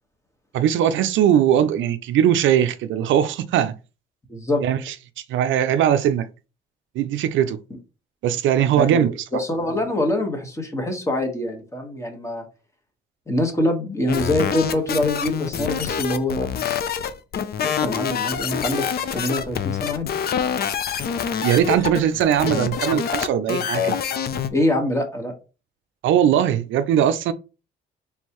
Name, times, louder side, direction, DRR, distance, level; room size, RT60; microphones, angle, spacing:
voice 1, 0.5-3.7 4.6-4.9 5.3-6.3 7.0-7.6 8.2-9.1 21.4-24.0 26.0-27.3, right 10 dB, 75° right, 0.4 m, -20 dB
voice 2, 4.3-4.6 8.8-12.4 13.3-16.5 17.6-18.8 19.1-20.1 24.5-25.3, left 1 dB, 15° left, 1.3 m, -24 dB
sound 1, 14.1-24.5, left 8 dB, 50° left, 0.5 m, -26 dB
4.4 x 3.4 x 3.0 m
cardioid pair, 90°, 20 cm